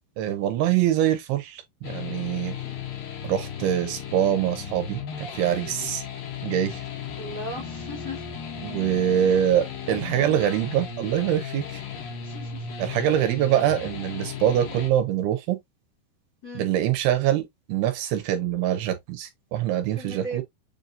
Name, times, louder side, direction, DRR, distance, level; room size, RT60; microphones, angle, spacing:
voice 1, 0.2-2.6 3.2-6.0 6.4-6.8 8.6-11.8 12.8-15.6 16.6-20.4, right 11 dB, 80° right, 2.5 m, -24 dB
sound 1, 1.8-14.9, left 7 dB, 70° left, 2.7 m, -36 dB
voice 2, 7.2-8.2 9.2-9.4 9.9-10.5 12.2-12.6 16.4-16.7 19.9-20.4, right 1 dB, 45° left, 1.4 m, -37 dB
7.1 x 2.7 x 2.5 m
omnidirectional pair, 4.7 m